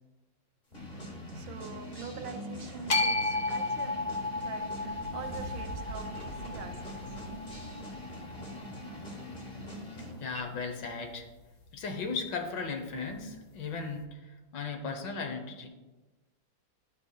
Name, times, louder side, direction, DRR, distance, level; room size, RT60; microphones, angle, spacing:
sound 1, 0.7-10.4, equal, 30° left, 1.1 m, -43 dB
voice 1, 1.1-7.3, right 6 dB, 85° right, 1.5 m, -45 dB
sound 2, 2.9-9.1, left 2 dB, 50° left, 0.7 m, -34 dB
sound 3, 4.7-9.1, right 3 dB, 55° right, 1.3 m, -46 dB
voice 2, 10.2-11.3 11.7-14.2 14.5-15.7, left 4 dB, 70° left, 1.5 m, -36 dB
11.5 x 5.1 x 2.3 m
omnidirectional pair, 2.1 m